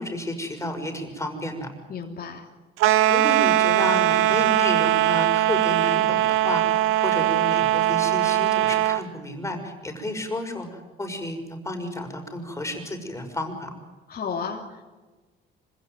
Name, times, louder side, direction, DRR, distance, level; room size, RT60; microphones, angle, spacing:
voice 1, 0.0-1.7 3.1-13.7, left 1 dB, 15° left, 4 dB, 6.1 m, -31 dB
voice 2, 1.9-2.5 14.1-14.9, left 6 dB, 45° left, -1 dB, 3.2 m, -33 dB
sound 1, 2.8-9.0, right 14 dB, 80° right, 0.9 m, -21 dB
26.0 x 16.5 x 9.2 m, 1.3 s
cardioid pair, 90°, 21 cm